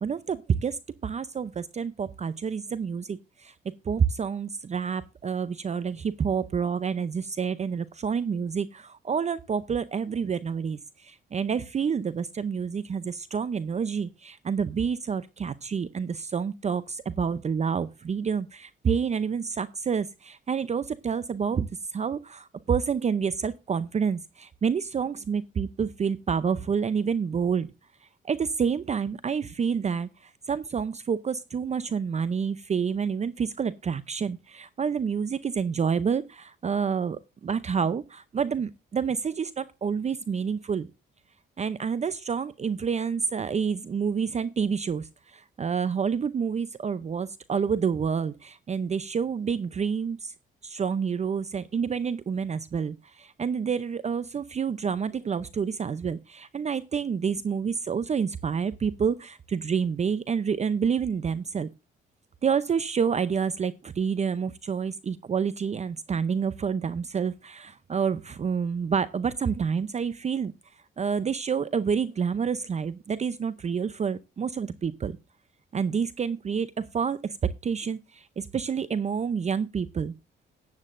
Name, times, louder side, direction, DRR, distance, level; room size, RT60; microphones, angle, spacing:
voice 1, 0.0-3.5 3.8-27.7 28.0-40.9 41.6-50.3 50.6-61.7 62.4-75.2 75.7-77.4 77.6-80.1, right 6 dB, 35° right, 15 dB, 0.6 m, -28 dB
14.0 x 9.6 x 2.5 m, 0.27 s
cardioid pair, 90°, 20 cm